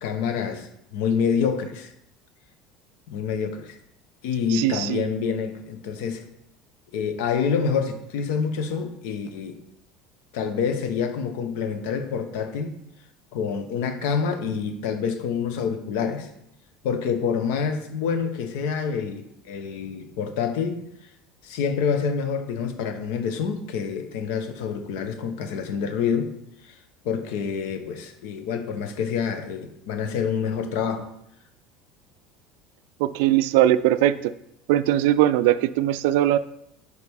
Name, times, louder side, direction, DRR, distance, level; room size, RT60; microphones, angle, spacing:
voice 1, 0.0-1.9 3.1-3.8 4.2-6.2 6.9-9.6 10.3-12.8 13.3-16.3 16.8-20.8 21.4-26.3 26.6-26.7 27.0-31.1, left 6 dB, 80° left, 8 dB, 0.9 m, -27 dB
voice 2, 4.5-5.1 33.0-34.3 34.7-36.4, right 13 dB, 80° right, 15 dB, 0.3 m, -20 dB
5.3 x 4.8 x 4.7 m, 0.77 s
supercardioid pair, 130°, 0 cm